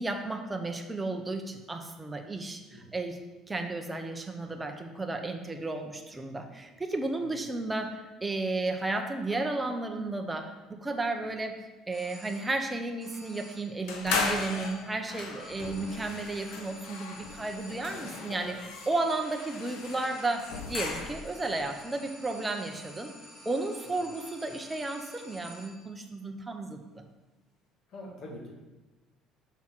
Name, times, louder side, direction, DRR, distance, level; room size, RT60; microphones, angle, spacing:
voice 1, 0.0-3.2 3.5-11.6 11.9-18.6 18.9-23.1 23.4-27.0, right 2 dB, 15° right, 4 dB, 0.7 m, -33 dB
sound 1, 11.9-12.7 13.0-13.8 14.2-15.0 15.4-25.9, left 1 dB, 20° left, 2.1 m, -51 dB
sound 2, 13.9-21.4, left 4 dB, 85° left, 1.0 m, -37 dB
voice 2, 27.9-28.5, left 1 dB, 50° left, -2 dB, 1.9 m, -45 dB
5.9 x 4.1 x 5.9 m, 1.1 s
cardioid pair, 130°, 0 cm